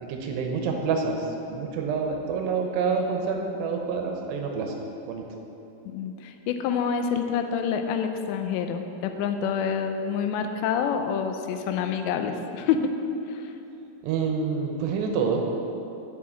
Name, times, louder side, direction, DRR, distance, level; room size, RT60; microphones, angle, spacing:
voice 1, 0.0-4.7 5.1-5.2 14.0-15.4, right 5 dB, 80° right, 2 dB, 2.9 m, -27 dB
voice 2, 5.9-12.9 13.3-13.5, left 7 dB, 85° left, 6 dB, 2.8 m, -27 dB
7.5 x 7.4 x 8.4 m, 2.8 s
omnidirectional pair, 5.1 m